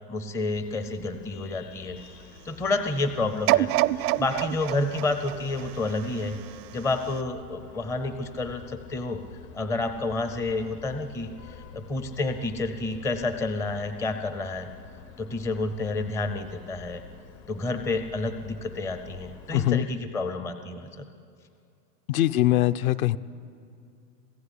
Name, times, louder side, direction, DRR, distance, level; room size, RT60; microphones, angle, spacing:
voice 1, 0.1-2.0 2.4-3.7 3.9-6.4 6.7-9.2 9.5-14.7 15.2-17.0 17.5-21.1, left 2 dB, 5° left, 8 dB, 0.5 m, -30 dB
Vehicle horn car horn honking, 0.5-19.6, left 5 dB, 85° left, 4.0 m, -48 dB
sound 1, 3.5-6.5 7.1-7.2, right 16 dB, 75° right, 0.7 m, -26 dB
voice 2, 19.5-19.9 22.1-23.2, left 15 dB, 60° left, 12 dB, 0.8 m, -22 dB
26.5 x 16.0 x 9.9 m, 2.5 s
supercardioid pair, 150°, 48 cm